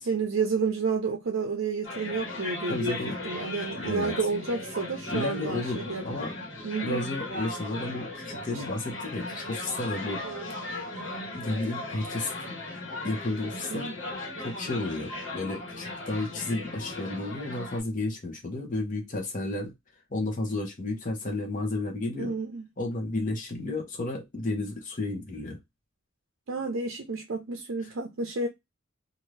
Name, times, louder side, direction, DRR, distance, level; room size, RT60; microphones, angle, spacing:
voice 1, 0.1-3.0 3.2-6.0 6.6-7.1 8.5-8.6 10.2-10.5 13.7-13.9 22.2-22.6 26.5-28.5, right 4 dB, 60° right, 0.5 m, -30 dB
sound 1, 1.8-17.8, left 2 dB, 60° left, 1.5 m, -37 dB
voice 2, 2.7-3.2 3.7-4.2 5.1-6.3 6.8-10.2 11.3-12.6 13.0-13.9 14.4-19.7 20.1-22.3 22.8-25.6, left 2 dB, 40° left, 0.9 m, -32 dB
2.7 x 2.5 x 3.2 m
head